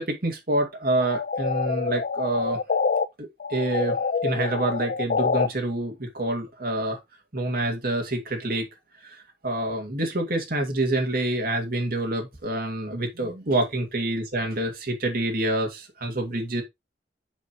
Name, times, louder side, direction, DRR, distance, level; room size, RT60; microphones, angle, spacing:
voice 1, 0.0-2.6 3.2-4.0 4.2-7.0 7.3-8.7 9.0-16.6, right 1 dB, 55° right, 2.3 m, -27 dB
sound 1, 1.0-3.0 3.4-5.5, left 5 dB, 50° left, 0.5 m, -26 dB
7.2 x 6.4 x 3.0 m
head